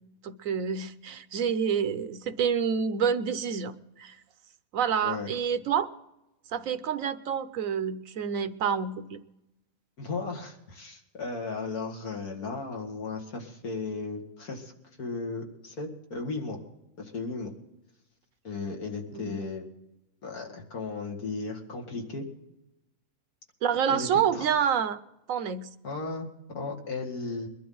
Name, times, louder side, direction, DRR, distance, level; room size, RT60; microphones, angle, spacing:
voice 1, 0.2-4.2 4.7-5.9 6.5-9.2 19.1-19.4 23.6-25.0 25.3-25.7, right 7 dB, 70° right, 12 dB, 1.1 m, -28 dB
voice 2, 10.0-14.7 15.0-16.6 17.0-17.5 18.4-19.6 20.2-22.3 23.9-24.5 25.8-27.5, left 3 dB, 85° left, 1 dB, 2.5 m, -35 dB
22.5 x 12.0 x 3.9 m, 0.90 s
omnidirectional pair, 1.5 m